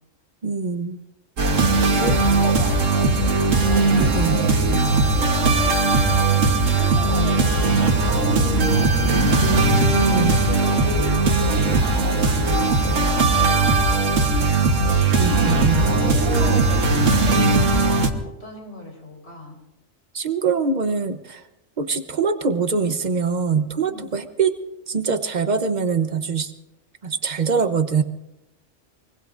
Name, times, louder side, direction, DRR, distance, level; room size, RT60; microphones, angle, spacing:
voice 1, 0.4-1.0 2.0-2.2 3.9-4.4 9.4-10.3 12.9-13.0 15.1-15.8 20.1-21.4 21.8-24.5 24.9-26.5 27.0-28.0, right 5 dB, 40° right, 9 dB, 1.0 m, -23 dB
voice 2, 1.4-5.5 6.5-11.4 11.8-12.8 13.3-14.8 15.6-17.9 18.2-19.6 23.9-24.1, left 1 dB, 55° left, 0 dB, 4.8 m, -37 dB
sound 1, 1.4-18.1, right 3 dB, 80° right, 1.6 m, -19 dB
24.5 x 22.0 x 2.6 m, 0.94 s
omnidirectional pair, 1.3 m